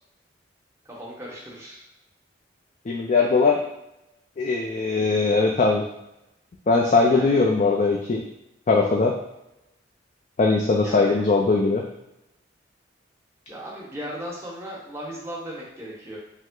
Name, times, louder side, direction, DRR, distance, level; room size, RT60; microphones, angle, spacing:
voice 1, 0.8-1.8 7.1-7.4 10.8-11.2 13.5-16.2, equal, 15° right, -4 dB, 1.0 m, -36 dB
voice 2, 2.9-3.6 4.4-5.8 6.7-8.2 8.7-9.1 10.4-11.8, left 3 dB, 40° left, 0 dB, 0.4 m, -20 dB
5.3 x 2.1 x 3.7 m, 0.88 s
head